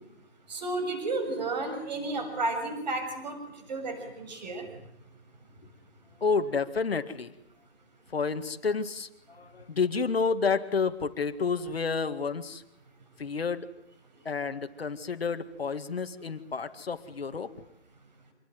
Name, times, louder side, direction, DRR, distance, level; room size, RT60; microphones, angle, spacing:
voice 1, 0.5-3.4 3.7-4.7, right 2 dB, 40° right, 7 dB, 6.8 m, -32 dB
voice 2, 6.2-7.3 8.1-12.6 13.2-13.7 14.2-17.6, left 5 dB, 60° left, 9 dB, 2.1 m, -30 dB
26.0 x 20.5 x 9.4 m, 0.82 s
hypercardioid pair, 170°, 34 cm